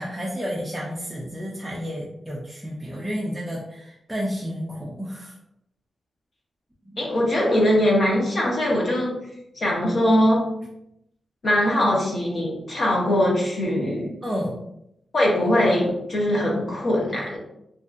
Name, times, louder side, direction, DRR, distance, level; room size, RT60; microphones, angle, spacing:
voice 1, 0.0-5.4 6.9-7.0 14.2-14.6, equal, 5° right, -5 dB, 0.3 m, -31 dB
voice 2, 7.0-9.2 9.6-10.5 11.4-14.1 15.1-17.4, left 1 dB, 45° left, -4 dB, 0.8 m, -21 dB
2.6 x 2.4 x 2.4 m, 0.80 s
wide cardioid pair, 160°, 0 cm